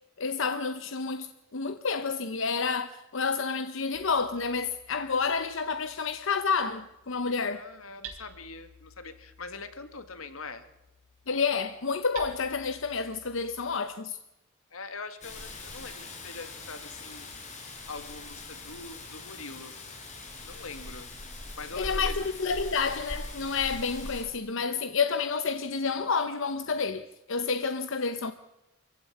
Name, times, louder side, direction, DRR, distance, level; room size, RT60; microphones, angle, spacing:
voice 1, 0.2-7.6 11.3-14.2 21.8-28.3, left 5 dB, 65° left, 0.8 m, -29 dB
Hammer, 3.9-13.7, right 4 dB, 90° right, 3.9 m, -52 dB
voice 2, 7.5-10.7 14.7-17.3 17.9-19.8 20.4-21.1 21.6-22.3, left 3 dB, 85° left, 1.9 m, -43 dB
Rain, 15.2-24.2, left 2 dB, 35° left, 5.1 m, -41 dB
24.5 x 15.5 x 8.4 m
head